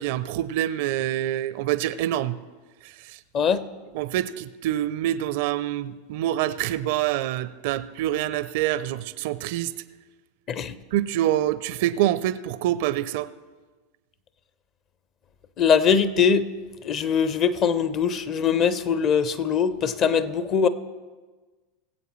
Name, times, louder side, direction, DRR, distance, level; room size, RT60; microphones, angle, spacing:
voice 1, 0.0-2.4 2.8-3.2 3.9-9.7 10.9-13.3, right 13 dB, 55° right, 0.5 m, -26 dB
voice 2, 15.6-16.5 16.8-20.7, left 7 dB, 40° left, 0.7 m, -22 dB
21.0 x 8.1 x 3.1 m
figure-of-eight pair, 85°, 0 cm